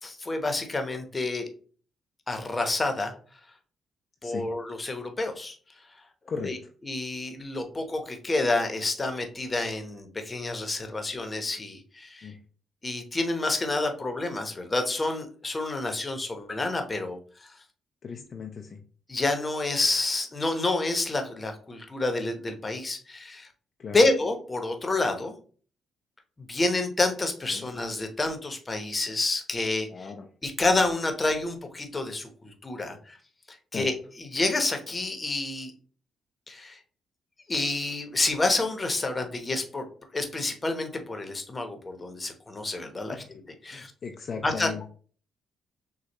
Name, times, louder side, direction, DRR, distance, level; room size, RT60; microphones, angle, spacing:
voice 1, 0.0-1.5 2.3-3.1 4.2-5.6 6.4-6.6 6.8-12.3 12.8-17.6 19.1-23.5 23.9-25.4 26.4-30.1 30.4-33.2 33.5-35.7 36.5-36.8 37.5-39.9 40.1-43.1 43.6-43.9 44.4-44.9, left 2 dB, 25° left, 6 dB, 0.9 m, -29 dB
voice 2, 18.0-18.8 23.8-24.0 27.5-27.7 29.9-30.3 33.7-33.9 43.7-44.9, left 5 dB, 50° left, 4 dB, 0.5 m, -37 dB
6.5 x 2.4 x 3.0 m, 0.42 s
cardioid pair, 90°, 0 cm